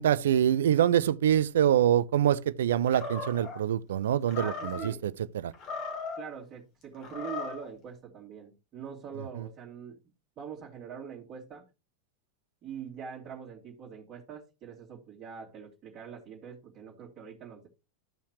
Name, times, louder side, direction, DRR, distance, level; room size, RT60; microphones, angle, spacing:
voice 1, 0.0-5.5, right 10 dB, 60° right, 0.5 m, -25 dB
Animal, 2.9-3.6 4.3-4.9 5.5-6.3 7.0-7.7, left 4 dB, 40° left, 2.8 m, -37 dB
voice 2, 4.4-5.1 6.2-10.0 10.4-11.6 12.6-17.7, right 7 dB, 30° right, 2.8 m, -43 dB
14.0 x 5.6 x 3.0 m
figure-of-eight pair, 90°, 0 cm